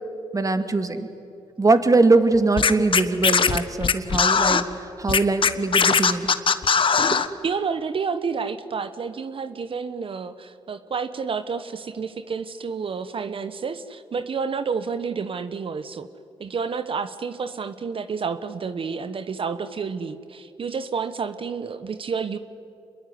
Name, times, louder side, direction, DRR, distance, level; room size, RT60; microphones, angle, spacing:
voice 1, 0.3-1.1 1.6-6.3 7.0-7.1, right 3 dB, 30° right, 8 dB, 2.5 m, -21 dB
Scratching (performance technique), 2.6-4.6 5.1-7.3, left 6 dB, 50° left, 1.4 m, -19 dB
voice 2, 7.1-16.1 16.4-22.4, right 5 dB, 50° right, 12 dB, 1.2 m, -30 dB
26.5 x 21.5 x 9.7 m, 2.7 s
supercardioid pair, 55°, 11 cm